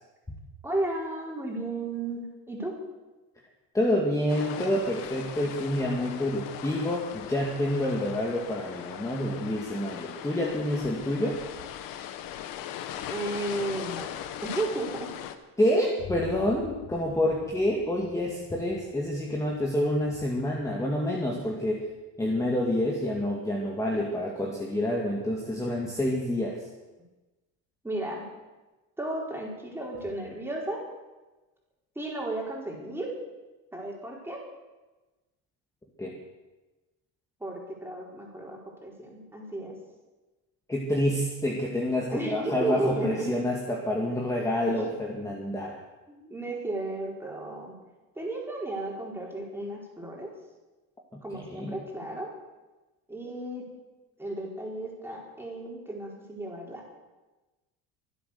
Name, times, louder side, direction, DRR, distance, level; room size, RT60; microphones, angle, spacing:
voice 1, 0.6-2.7 13.1-14.1 14.4-15.1 27.8-28.2 29.0-30.8 31.9-33.1 33.7-34.4 37.4-39.8 42.1-43.4 44.7-44.9 46.1-47.7 48.1-50.3 51.2-52.3 53.1-53.7 54.2-56.9, right 2 dB, 5° right, -2 dB, 4.7 m, -34 dB
voice 2, 3.7-11.4 15.6-21.9 22.2-26.6 36.0-36.2 40.7-45.8 51.1-51.7, left 1 dB, 10° left, -1 dB, 2.1 m, -28 dB
sound 1, 4.3-15.4, left 10 dB, 75° left, 1.4 m, -39 dB
Boom, 16.0-23.8, left 4 dB, 55° left, 3.9 m, -48 dB
24.5 x 8.2 x 6.9 m, 1.2 s
cardioid pair, 130°, 33 cm